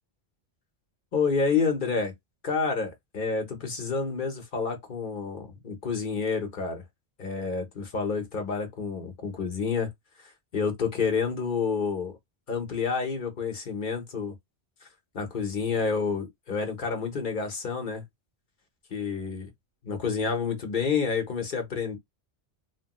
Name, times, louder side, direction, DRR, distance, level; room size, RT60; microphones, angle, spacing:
voice 1, 1.1-2.1 2.4-6.8 7.2-9.9 10.2-12.2 12.5-14.3 15.1-18.0 18.9-19.5 19.8-22.0, left 5 dB, 50° left, 1.1 m, -29 dB
3.1 x 2.2 x 3.0 m
omnidirectional pair, 1.1 m